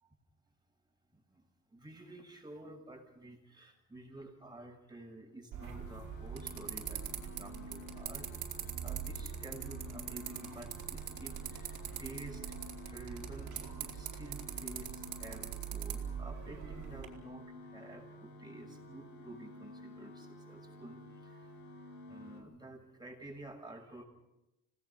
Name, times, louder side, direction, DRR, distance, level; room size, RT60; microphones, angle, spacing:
voice 1, 1.7-7.1 7.4-8.3 8.8-12.5 12.9-21.5 22.1-24.0, right 2 dB, 15° right, 1 dB, 7.1 m, -51 dB
sound 1, 5.5-17.1, right 8 dB, 80° right, 4.1 m, -42 dB
sound 2, 5.6-22.4, left 1 dB, 70° left, 4.2 m, -51 dB
27.5 x 18.5 x 6.1 m, 0.93 s
cardioid pair, 90°, 30 cm